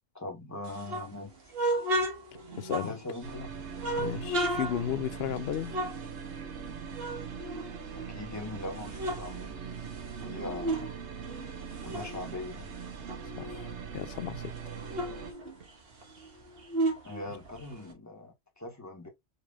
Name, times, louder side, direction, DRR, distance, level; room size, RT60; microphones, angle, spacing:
voice 1, 0.1-1.3 2.9-3.5 7.9-9.6 10.2-10.9 11.8-12.7 17.0-19.1, left 2 dB, 15° left, 1.4 m, -41 dB
sound 1, 0.6-3.3 3.8-6.7 6.9-8.3 8.7-10.9 11.2-13.8 14.1-14.2 14.5-17.9, right 1 dB, 60° right, 1.4 m, -34 dB
voice 2, 2.6-2.9 3.9-5.7 13.4-14.5, left 9 dB, 70° left, 0.8 m, -34 dB
sound 2, 3.2-15.3, right 7 dB, 90° right, 1.1 m, -41 dB
5.4 x 3.3 x 2.3 m
omnidirectional pair, 1.1 m